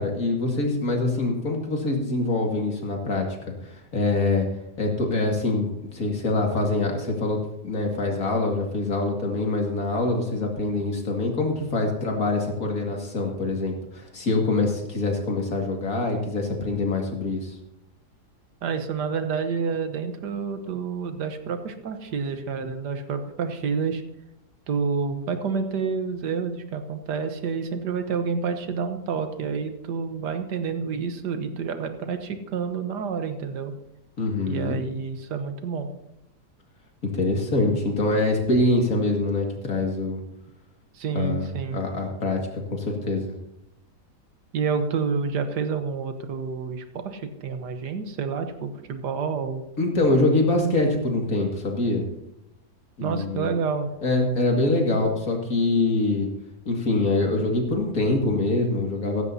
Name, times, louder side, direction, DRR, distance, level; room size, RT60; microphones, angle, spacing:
voice 1, 0.0-4.5 4.8-7.4 7.6-17.6 34.2-34.8 37.0-40.2 41.1-42.4 42.7-43.3 49.8-52.1 53.0-53.5 54.0-56.3 56.7-59.2, left 2 dB, 60° left, 1 dB, 2.5 m, -24 dB
voice 2, 18.6-24.0 24.7-33.7 34.5-35.9 40.9-41.8 44.5-49.6 53.0-53.9, right 5 dB, 90° right, 8 dB, 1.7 m, -29 dB
16.0 x 14.0 x 2.8 m, 0.88 s
omnidirectional pair, 1.7 m